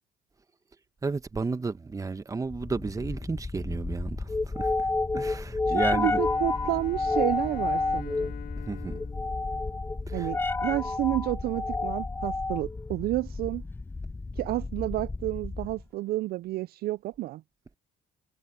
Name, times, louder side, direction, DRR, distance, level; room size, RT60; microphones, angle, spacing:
voice 1, 1.0-4.9 5.1-6.2 8.7-9.0 10.1-10.3, right 4 dB, 20° right, 1.2 m, -32 dB
sound 1, 2.5-15.8, left 3 dB, 15° left, 0.6 m, -31 dB
voice 2, 5.7-8.3 10.1-13.6 14.4-17.4, right 16 dB, 65° right, 0.4 m, -30 dB
Bowed string instrument, 5.8-10.4, left 11 dB, 65° left, 5.3 m, -46 dB
cardioid pair, 110°, 17 cm